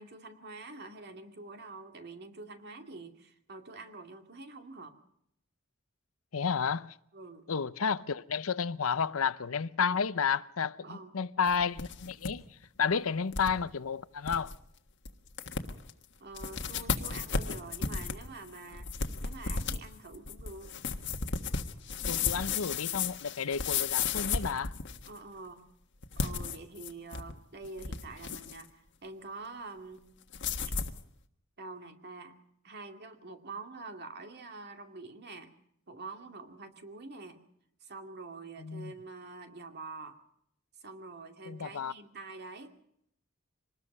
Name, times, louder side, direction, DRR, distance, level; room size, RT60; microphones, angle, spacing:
voice 1, 0.0-5.0 7.1-7.5 10.8-11.1 12.9-13.0 16.2-18.9 19.2-20.7 25.1-25.7 26.2-30.0 30.6-30.7 31.6-32.4 32.6-35.5 35.9-37.4 37.8-40.2 40.8-42.7, right 3 dB, 50° right, 2.4 m, -46 dB
voice 2, 6.3-7.0 7.5-14.5 22.1-24.7 38.6-38.9 41.5-41.9, left 6 dB, 85° left, 0.7 m, -31 dB
sound 1, 11.5-12.3 12.6-12.7 13.3-13.5 13.9-14.0 14.3-14.6 15.1-15.2 15.4-15.9 16.3-25.2 26.0-27.3 27.6-28.6 30.3-31.0, left 5 dB, 60° left, 1.5 m, -34 dB
25.5 x 19.5 x 5.4 m
head